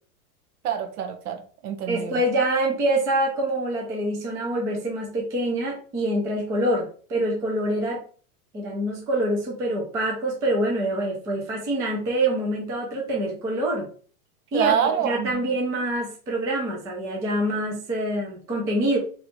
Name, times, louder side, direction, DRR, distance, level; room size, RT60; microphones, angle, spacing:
voice 1, 0.6-2.1 14.5-15.3, right 8 dB, 85° right, 6 dB, 1.1 m, -26 dB
voice 2, 1.9-8.0 8.5-13.9 14.5-19.0, right 1 dB, 10° right, -1 dB, 0.3 m, -25 dB
3.3 x 2.8 x 4.0 m, 0.41 s
supercardioid pair, 140°, 44 cm